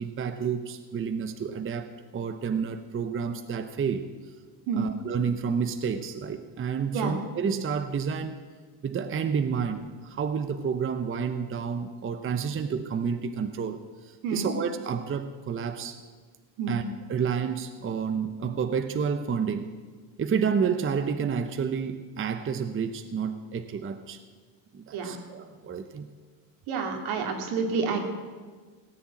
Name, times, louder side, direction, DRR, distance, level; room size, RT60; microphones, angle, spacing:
voice 1, 0.0-4.1 4.7-8.4 8.8-16.0 16.7-16.8 17.1-19.7 20.2-24.2 24.7-26.1, right 6 dB, 25° right, 9 dB, 0.8 m, -30 dB
voice 2, 26.7-28.0, right 5 dB, 75° right, 3 dB, 2.6 m, -29 dB
17.5 x 7.0 x 8.7 m, 1.5 s
cardioid pair, 110°, 49 cm